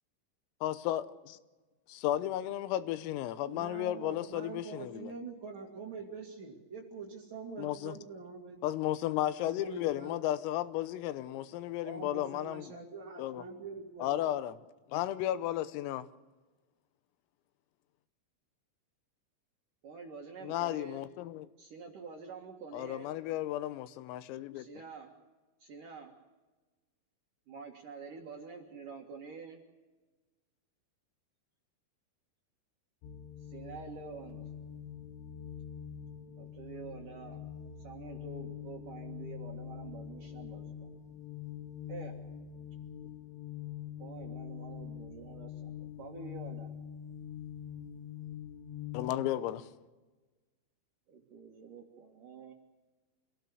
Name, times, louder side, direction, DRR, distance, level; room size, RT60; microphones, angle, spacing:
voice 1, 0.6-1.4 1.9-5.1 7.6-8.0 8.6-12.7 13.2-13.5 14.0-14.6 14.9-16.1 20.4-21.5 22.7-24.7 48.9-49.7, left 13 dB, 85° left, 3.6 m, -34 dB
voice 2, 3.5-8.7 9.4-10.3 11.8-14.3, right 4 dB, 40° right, 1.8 m, -45 dB
voice 3, 19.8-21.1 21.6-23.1 24.5-25.1 25.6-26.1 27.5-29.6 33.5-34.5 36.4-37.4 37.8-41.0 41.9-42.1 44.0-46.7 51.1-52.5, right 5 dB, 60° right, 2.4 m, -47 dB
sound 1, 33.0-49.1, left 9 dB, 70° left, 3.7 m, -44 dB
26.5 x 17.0 x 8.0 m
omnidirectional pair, 6.0 m